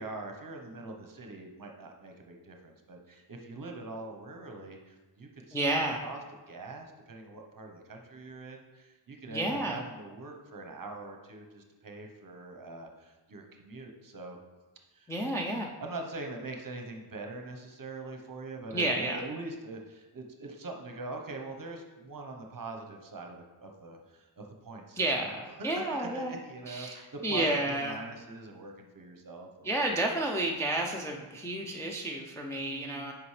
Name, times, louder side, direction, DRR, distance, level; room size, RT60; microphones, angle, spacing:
voice 1, 0.0-5.6 6.0-6.2 6.5-14.4 14.9-15.5 15.8-29.8 30.3-30.4 32.6-33.1, right 2 dB, 40° right, 3 dB, 0.9 m, -43 dB
voice 2, 5.5-6.0 9.3-9.8 15.1-15.7 18.7-19.2 25.0-26.3 26.7-28.0 29.6-33.1, right 1 dB, 5° left, 0 dB, 0.4 m, -31 dB
8.5 x 5.1 x 3.2 m, 1.2 s
wide cardioid pair, 140°, 49 cm